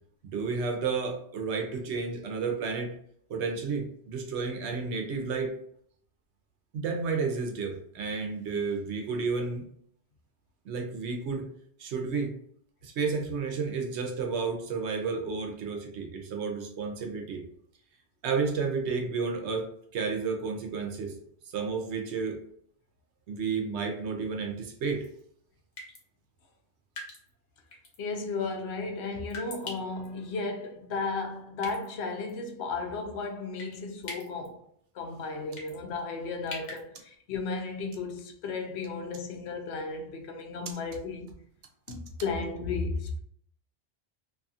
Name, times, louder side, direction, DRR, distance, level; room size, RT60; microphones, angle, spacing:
voice 1, 0.3-2.9 3.3-5.6 6.7-9.7 10.6-11.5 11.8-12.4 12.8-17.4 18.2-21.2 21.4-22.4 23.3-25.1, right 4 dB, 90° right, 0.9 m, -31 dB
sound 1, 25.0-25.2 25.8-26.0 27.0-27.3 27.7-28.0 29.3-30.1 31.6-31.9 32.3-32.4 33.6-33.8 34.0-34.5 35.6-35.8 36.5-36.8, left 2 dB, 45° left, 0.8 m, -41 dB
voice 2, 28.0-34.6 34.9-41.3 41.9-43.2, left 4 dB, 80° left, 0.8 m, -34 dB
2.7 x 2.4 x 2.6 m
omnidirectional pair, 1.1 m